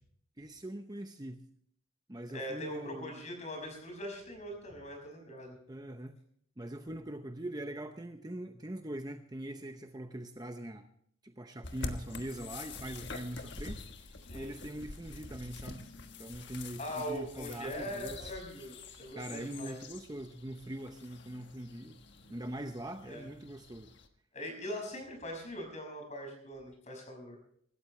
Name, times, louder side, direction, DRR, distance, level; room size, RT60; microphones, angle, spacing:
voice 1, 0.4-1.4 2.1-3.1 5.7-6.2 6.6-10.9 11.2-15.9 16.2-18.4 19.2-22.0 22.3-23.9, right 1 dB, 20° right, 6 dB, 0.7 m, -42 dB
voice 2, 2.3-5.6 14.3-14.6 16.8-19.8 23.1-23.2 24.3-27.4, equal, 35° left, 2 dB, 5.7 m, -41 dB
sound 1, 11.6-24.1, left 3 dB, 55° left, 1.4 m, -47 dB
25.0 x 13.0 x 3.2 m, 0.64 s
head